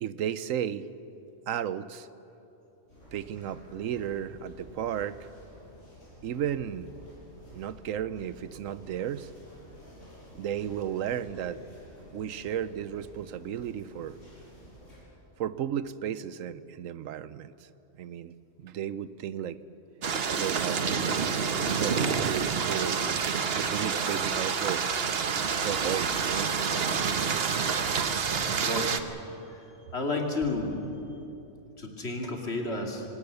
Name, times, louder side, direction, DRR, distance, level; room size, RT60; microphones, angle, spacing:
voice 1, 0.0-0.9 1.5-2.1 3.1-5.2 6.2-6.9 7.5-9.3 10.3-11.6 12.1-14.2 15.4-17.5 18.0-18.3 18.6-19.6 20.3-20.9 21.8-23.1 23.5-24.9 25.6-26.9 29.4-29.5, right 9 dB, 85° right, 15 dB, 1.1 m, -34 dB
sound 1, 2.9-15.0, equal, 70° left, 6.7 m, -51 dB
sound 2, 20.0-29.0, right 6 dB, 55° right, 1.1 m, -28 dB
voice 2, 28.5-29.0 29.5-30.8 31.8-33.0, left 2 dB, 55° left, 1 dB, 2.7 m, -32 dB
25.0 x 18.5 x 6.8 m, 2.9 s
omnidirectional pair, 1.3 m